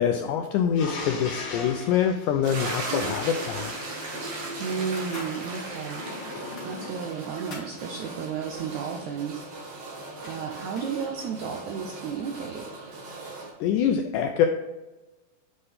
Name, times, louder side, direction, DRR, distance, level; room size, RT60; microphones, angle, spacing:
voice 1, 0.0-3.7 13.6-14.5, left 8 dB, 90° left, 5 dB, 1.8 m, -25 dB
sound 1, 0.7-3.5 5.9-7.3, left 3 dB, 65° left, 2.6 m, -38 dB
sound 2, 2.4-13.5, right 2 dB, 55° right, 2.0 m, -37 dB
sound 3, 3.0-3.5 3.8-4.1 4.6-5.4 5.7-5.8 6.4-7.7 9.7-9.8 10.0-10.9, left 2 dB, 30° left, 1.8 m, -46 dB
voice 2, 4.6-6.1 6.6-9.7 10.2-12.6, right 6 dB, 85° right, 3 dB, 1.7 m, -33 dB
7.8 x 5.5 x 3.4 m, 1.1 s
omnidirectional pair, 4.2 m